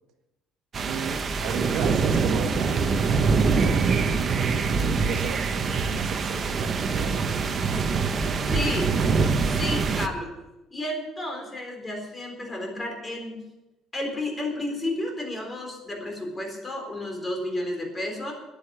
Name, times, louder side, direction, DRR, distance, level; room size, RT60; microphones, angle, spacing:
sound 1, 0.7-10.1, right 4 dB, 30° right, 1.1 m, -24 dB
voice 1, 0.8-4.5 4.9-7.8, right 6 dB, 70° right, 5 dB, 1.7 m, -36 dB
voice 2, 8.5-8.9 9.5-10.3 10.7-13.4 13.9-18.3, left 1 dB, 15° left, 2 dB, 3.9 m, -32 dB
13.5 x 10.0 x 7.0 m, 0.96 s
cardioid pair, 150°, 0 cm